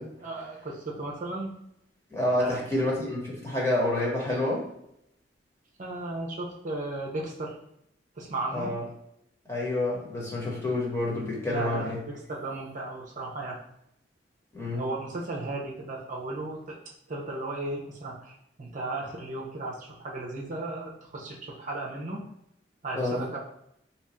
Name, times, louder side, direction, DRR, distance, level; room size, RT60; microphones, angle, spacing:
voice 1, 0.2-1.5 2.4-2.9 5.8-7.5 8.2-8.7 11.5-13.6 14.7-16.8 17.1-22.2 22.8-23.4, right 2 dB, 45° right, -2 dB, 0.6 m, -35 dB
voice 2, 2.1-4.6 8.5-8.8 9.5-12.0 14.5-14.9 22.9-23.3, left 1 dB, 15° left, -5 dB, 1.1 m, -28 dB
2.9 x 2.4 x 4.2 m, 0.78 s
head